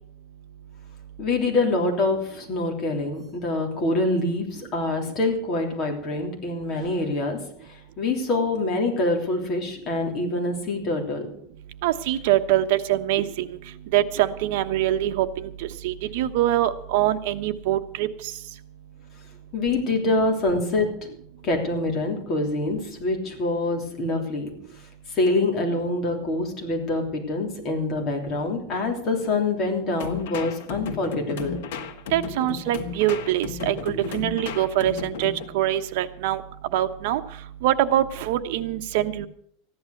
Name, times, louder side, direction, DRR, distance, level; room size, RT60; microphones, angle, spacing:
voice 1, 1.2-11.3 19.5-20.9 21.4-24.5 25.1-31.6, left 2 dB, 30° left, 1 dB, 3.3 m, -25 dB
voice 2, 11.8-13.5 13.9-18.1 32.1-36.4 36.7-37.2 37.6-39.3, right 13 dB, 60° right, 8 dB, 1.1 m, -24 dB
sound 1, 30.0-35.5, left 6 dB, 80° left, 1.9 m, -34 dB
14.5 x 11.0 x 6.6 m, 0.64 s
supercardioid pair, 170°, 0 cm